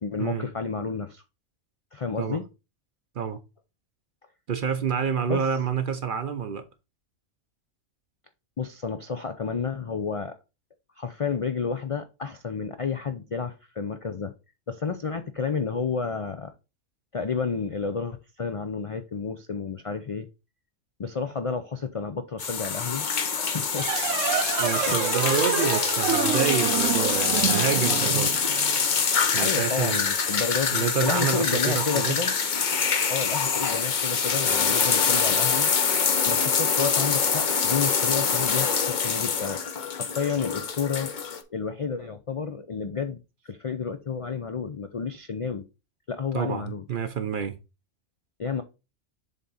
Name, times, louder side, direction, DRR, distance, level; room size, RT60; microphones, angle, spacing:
voice 1, 0.0-1.2 1.9-2.4 5.3-5.5 8.6-10.4 11.0-14.3 14.7-16.5 17.1-20.3 21.0-23.1 23.3-23.9 24.9-25.4 29.4-32.4 33.1-35.7 36.2-39.6 39.9-41.1 41.5-43.2 43.4-45.6 46.1-46.8 48.4-48.6, left 5 dB, 60° left, 0.3 m, -31 dB
voice 2, 4.5-6.6 24.6-28.4 29.3-30.0 30.7-32.1 46.3-47.6, right 6 dB, 55° right, 0.7 m, -28 dB
sound 1, 22.4-41.4, left 6 dB, 45° left, 0.8 m, -25 dB
sound 2, 23.7-29.0, right 8 dB, 85° right, 1.1 m, -28 dB
7.3 x 3.6 x 4.0 m
omnidirectional pair, 1.3 m